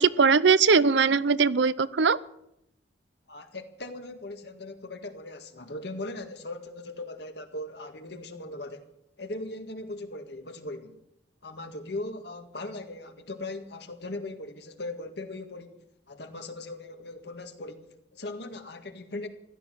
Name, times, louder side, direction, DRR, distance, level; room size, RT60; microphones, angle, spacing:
voice 1, 0.0-2.2, right 5 dB, 75° right, 0.6 m, -20 dB
voice 2, 3.3-8.8 9.2-11.0 11.4-19.3, left 2 dB, 65° left, 1.9 m, -39 dB
16.0 x 12.0 x 7.7 m
head